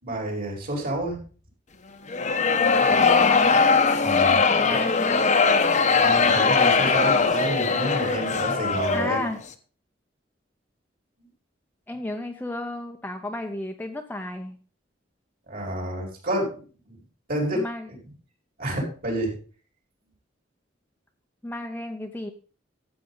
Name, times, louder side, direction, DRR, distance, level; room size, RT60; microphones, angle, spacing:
voice 1, 0.0-1.2 4.0-4.4 5.9-9.2 15.5-16.6 16.9-17.0 17.3-18.0 18.6-19.4, right 1 dB, 50° right, 0 dB, 4.7 m, -29 dB
sound 1, 2.1-9.3, left 4 dB, 40° left, 1.0 m, -20 dB
voice 2, 2.9-3.6 4.5-5.3 8.9-9.4 11.9-14.6 17.5-17.9 21.4-22.3, left 1 dB, 10° left, 4 dB, 0.8 m, -33 dB
13.5 x 8.2 x 3.9 m, 0.39 s
head